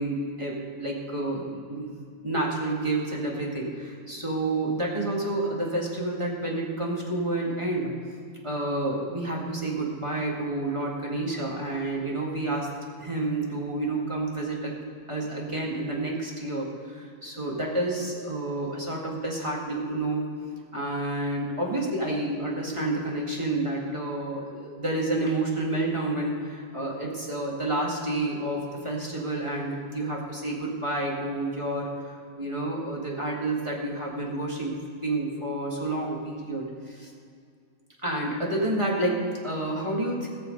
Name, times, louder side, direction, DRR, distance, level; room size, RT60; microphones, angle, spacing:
voice 1, 0.0-1.9 2.2-7.9 8.4-12.7 13.0-14.8 15.1-20.3 20.7-34.7 35.0-37.1 38.0-40.3, right 2 dB, 15° right, -3 dB, 1.9 m, -29 dB
18.0 x 6.9 x 5.2 m, 2.3 s
omnidirectional pair, 1.9 m